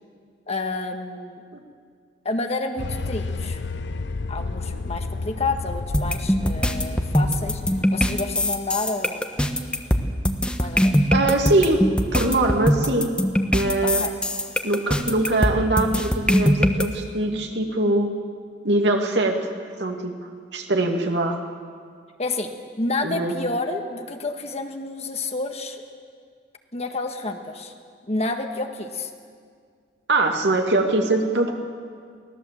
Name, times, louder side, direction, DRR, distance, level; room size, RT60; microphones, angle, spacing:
voice 1, 0.5-1.4 2.2-3.6 4.3-9.2 10.6-11.0 13.8-14.1 22.2-22.5 22.8-25.8 26.7-27.7 28.1-29.1, left 3 dB, 35° left, 5 dB, 1.6 m, -29 dB
sound 1, 2.8-7.8, left 3 dB, 70° left, 0.7 m, -31 dB
sound 2, 5.9-16.8, equal, 5° left, 1.2 m, -21 dB
voice 2, 11.1-11.8 12.1-13.1 13.5-14.0 14.6-18.1 18.6-19.4 19.8-20.1 20.5-21.4 23.0-23.3 30.1-31.5, right 2 dB, 70° right, 3 dB, 2.4 m, -22 dB
24.0 x 18.0 x 7.6 m, 2.1 s
head